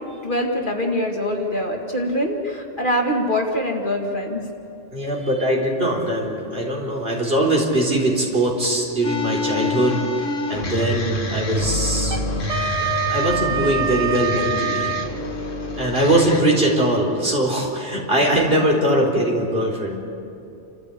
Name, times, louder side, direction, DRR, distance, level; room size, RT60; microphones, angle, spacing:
voice 1, 0.2-4.5, equal, 40° left, 0 dB, 2.2 m, -23 dB
voice 2, 4.9-10.0 10.5-12.3 13.1-14.9 15.8-20.0, right 1 dB, 50° right, -2 dB, 4.2 m, -21 dB
sound 1, 9.0-16.4, left 2 dB, 80° left, 2.2 m, -27 dB
Wind instrument woodwind instrument, 12.0-15.1, right 5 dB, 70° right, 1.7 m, -25 dB
29.0 x 14.0 x 8.4 m, 2.7 s
omnidirectional pair, 1.3 m